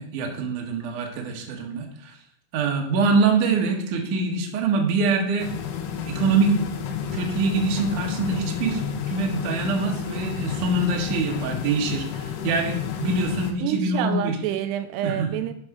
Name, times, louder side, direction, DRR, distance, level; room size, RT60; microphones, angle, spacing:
voice 1, 0.0-2.2 2.5-5.5 6.0-6.5 7.1-8.8 9.1-14.4 15.0-15.3, right 4 dB, 60° right, 1 dB, 2.3 m, -24 dB
sound 1, 5.4-13.5, left 8 dB, 80° left, 2.9 m, -31 dB
voice 2, 13.6-15.5, right 11 dB, 85° right, 9 dB, 2.7 m, -27 dB
7.4 x 6.4 x 4.7 m, 0.68 s
omnidirectional pair, 4.8 m